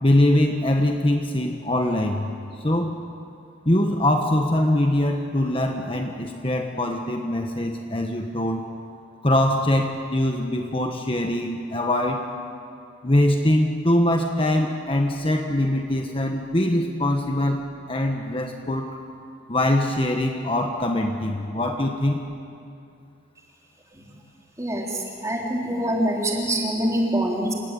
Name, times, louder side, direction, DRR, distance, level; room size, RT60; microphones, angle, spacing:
voice 1, 0.0-2.3 2.6-3.0 3.6-8.6 9.2-12.3 13.0-19.0 19.5-22.2, left 1 dB, 30° left, 3 dB, 1.3 m, -23 dB
voice 2, 24.6-27.5, right 1 dB, 15° right, -1 dB, 3.7 m, -25 dB
29.0 x 17.0 x 9.4 m, 2.5 s
head